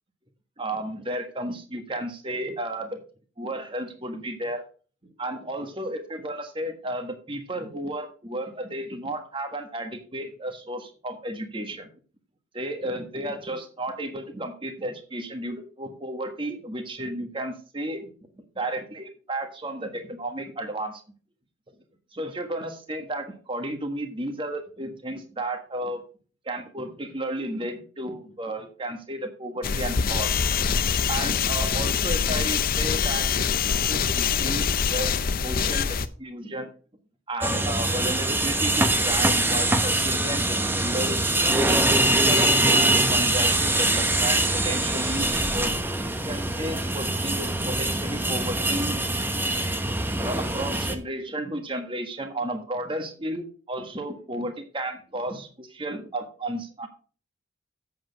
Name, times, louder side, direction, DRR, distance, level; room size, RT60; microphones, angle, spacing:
voice 1, 0.6-2.9 3.4-4.6 5.2-11.9 12.5-18.1 18.5-21.0 22.1-26.0 26.4-30.4 31.0-36.7 37.3-41.3 42.0-45.3 45.5-45.8 46.3-49.0 50.2-56.9, right 1 dB, 25° right, 6 dB, 1.4 m, -33 dB
sound 1, 29.6-36.1, left 6 dB, 45° left, 0.6 m, -24 dB
sound 2, 37.4-50.9, right 2 dB, 10° right, 0.9 m, -23 dB
8.1 x 7.7 x 5.2 m, 0.40 s
head